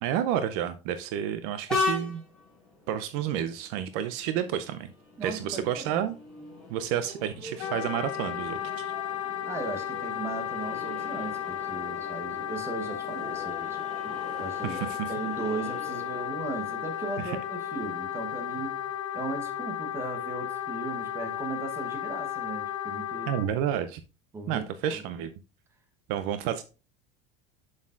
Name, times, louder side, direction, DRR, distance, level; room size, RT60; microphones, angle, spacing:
voice 1, 0.0-2.2 2.9-4.9 5.2-6.1 6.7-8.9 14.6-15.1 17.2-17.4 23.3-24.0 24.5-25.3 26.1-26.6, right 10 dB, 55° right, 0.5 m, -30 dB
Train, 1.7-19.0, left 3 dB, 5° left, 2.8 m, -40 dB
voice 2, 5.2-6.1 9.4-14.8 15.1-18.8 19.1-23.3 24.3-25.0, right 3 dB, 15° right, 1.0 m, -37 dB
Wind instrument woodwind instrument, 7.6-23.5, left 10 dB, 80° left, 0.8 m, -34 dB
7.2 x 6.4 x 2.5 m
supercardioid pair, 155°, 16 cm